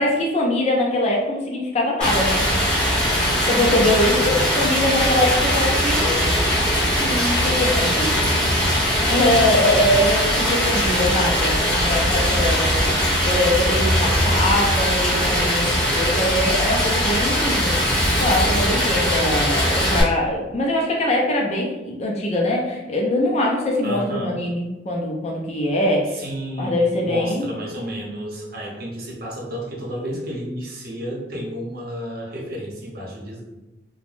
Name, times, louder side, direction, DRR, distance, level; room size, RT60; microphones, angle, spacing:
voice 1, 0.0-2.4 3.5-6.3 6.9-8.2 9.0-17.8 18.2-26.2 26.6-27.5, left 1 dB, 35° left, -1 dB, 0.4 m, -22 dB
Stream, 2.0-20.0, equal, 5° left, 1.0 m, -20 dB
voice 2, 4.0-4.5 9.6-9.7 14.0-14.7 23.8-24.4 26.1-33.4, equal, 55° right, -3 dB, 0.8 m, -32 dB
3.3 x 2.1 x 2.5 m, 1.1 s
head